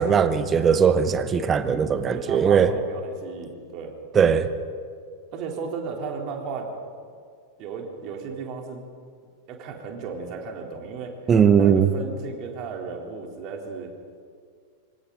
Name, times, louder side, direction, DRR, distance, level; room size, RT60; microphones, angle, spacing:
voice 1, 0.0-2.7 4.1-4.5 11.3-11.9, right 7 dB, 25° right, 12 dB, 1.2 m, -19 dB
voice 2, 2.1-3.9 5.3-6.7 7.6-8.8 9.5-11.1 11.6-13.9, right 5 dB, 40° right, 1 dB, 3.8 m, -34 dB
26.0 x 25.0 x 4.1 m, 2.1 s
figure-of-eight pair, 90°, 0 cm